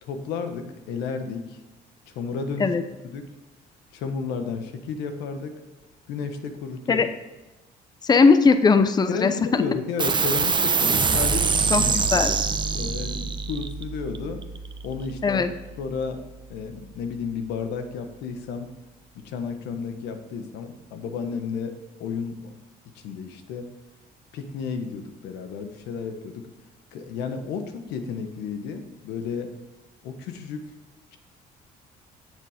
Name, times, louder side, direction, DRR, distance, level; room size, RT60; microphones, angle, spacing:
voice 1, 0.0-1.6 2.1-2.7 3.0-3.3 3.9-5.5 6.1-7.1 9.1-11.9 12.7-14.4 14.8-15.5 15.8-18.7 19.2-22.6 22.9-23.7 24.3-26.5 26.9-29.5 30.0-30.7, left 5 dB, 90° left, 7 dB, 1.4 m, -32 dB
voice 2, 8.0-9.6 11.7-12.3 15.2-15.5, left 4 dB, 25° left, 9 dB, 0.8 m, -19 dB
sound 1, 10.0-16.9, right 5 dB, 25° right, 0.9 m, -26 dB
17.0 x 6.8 x 5.1 m, 1.1 s
cardioid pair, 110°, 17 cm